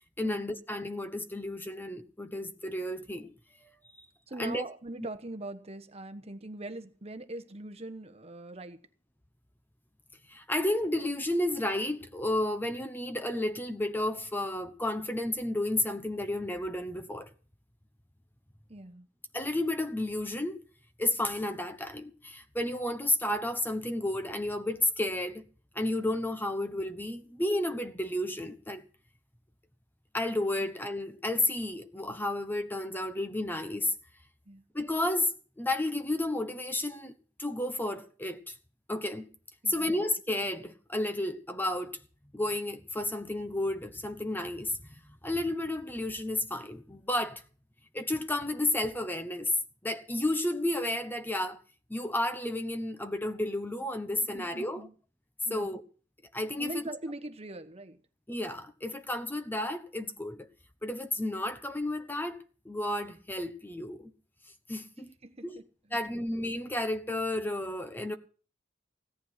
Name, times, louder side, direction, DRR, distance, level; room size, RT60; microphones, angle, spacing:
voice 1, 0.2-3.3 4.4-4.6 10.3-17.3 19.3-20.6 21.0-25.4 25.7-28.8 30.1-33.9 34.7-35.3 35.6-37.1 37.4-38.5 38.9-39.3 39.7-42.0 42.3-44.8 45.2-47.4 47.9-49.5 49.8-51.6 51.9-54.8 55.5-55.8 56.3-56.8 58.3-60.5 60.8-62.4 62.6-64.1 64.7-65.1 65.4-65.6 65.9-68.2, left 1 dB, 10° left, 1.1 m, -32 dB
voice 2, 4.3-8.8 18.7-19.1 30.6-30.7 34.4-34.6 39.6-40.0 54.2-54.9 55.4-55.8 56.6-58.0 65.2-66.3, right 2 dB, 35° right, 1.2 m, -42 dB
17.5 x 9.8 x 5.8 m
head